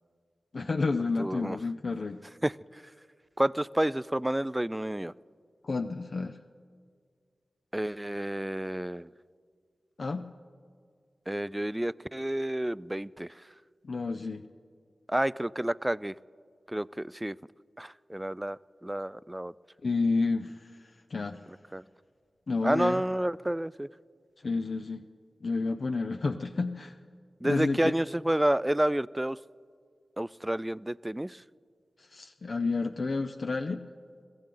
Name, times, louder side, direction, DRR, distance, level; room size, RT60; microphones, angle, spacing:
voice 1, 0.5-2.2 5.6-6.4 10.0-10.3 13.8-14.4 19.8-21.4 22.5-23.0 24.4-25.1 25.4-26.9 27.4-27.9 32.0-33.8, left 3 dB, 70° left, 6 dB, 0.5 m, -30 dB
voice 2, 1.2-1.6 2.4-2.8 3.4-5.1 7.7-9.1 11.3-13.3 15.1-16.1 16.7-17.4 17.8-19.5 21.7-21.8 22.6-23.9 27.4-29.4 30.2-31.4, right 1 dB, 15° right, 20 dB, 0.3 m, -30 dB
22.0 x 15.5 x 3.8 m, 2.1 s
cardioid pair, 45°, 0 cm